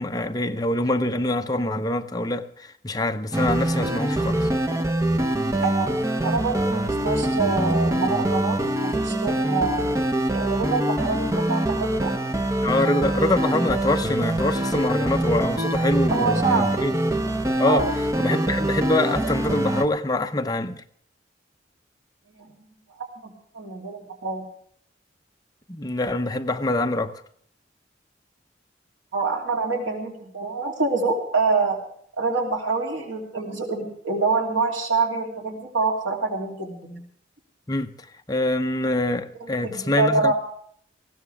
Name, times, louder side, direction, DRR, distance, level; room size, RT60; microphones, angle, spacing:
voice 1, 0.0-4.5 12.6-16.9 17.6-17.9 18.2-20.8 25.7-27.1 37.7-37.9 38.3-40.3, left 2 dB, 20° left, 0.7 m, -25 dB
sound 1, 3.3-19.8, right 1 dB, 15° right, 0.8 m, -24 dB
voice 2, 5.6-5.9 6.2-9.9 10.3-12.1 16.1-16.9 17.6-17.9 22.4-22.5 23.0-24.5 29.1-31.8 32.2-37.0 39.4-40.3, right 4 dB, 85° right, 3.1 m, -26 dB
19.5 x 16.0 x 3.5 m
head